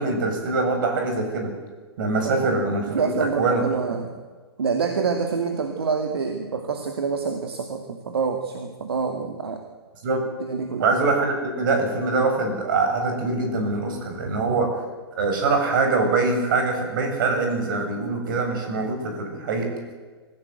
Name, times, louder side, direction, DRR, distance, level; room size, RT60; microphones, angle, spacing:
voice 1, 0.0-1.5 2.0-3.6 10.0-10.2 10.8-14.7 15.2-19.7, right 3 dB, 50° right, 3 dB, 7.6 m, -23 dB
voice 2, 2.9-4.1 4.6-9.6 10.5-10.8, right 5 dB, 70° right, 5 dB, 2.5 m, -26 dB
25.5 x 16.5 x 8.1 m, 1.4 s
figure-of-eight pair, 115°, 13 cm